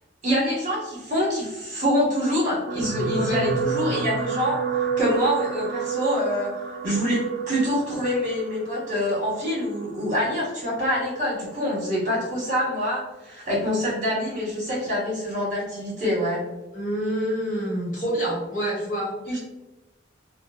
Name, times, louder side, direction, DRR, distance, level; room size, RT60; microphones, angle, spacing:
voice 1, 0.2-6.5 6.8-7.2 7.5-16.4 19.2-19.4, equal, 40° right, -6 dB, 1.4 m, -25 dB
sound 1, 2.7-11.1 11.9-12.1 12.4-12.5, right 5 dB, 80° right, 0.4 m, -30 dB
voice 2, 16.7-19.4, equal, 45° left, -5 dB, 1.0 m, -27 dB
3.2 x 2.0 x 2.4 m, 1.0 s
head